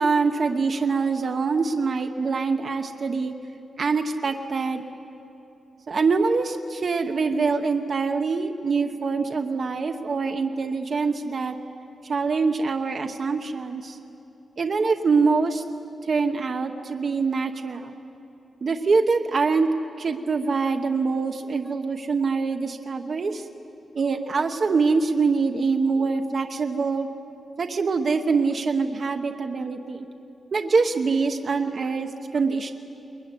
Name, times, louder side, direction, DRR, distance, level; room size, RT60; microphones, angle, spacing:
voice 1, 0.0-3.3 3.8-4.8 5.9-11.5 12.0-14.0 14.6-15.6 16.1-17.9 18.6-19.7 20.0-23.5 23.9-27.1 27.6-30.0 30.5-32.7, right 4 dB, 45° right, 4 dB, 1.0 m, -24 dB
22.0 x 21.5 x 9.7 m, 2.8 s
wide cardioid pair, 165°, 0 cm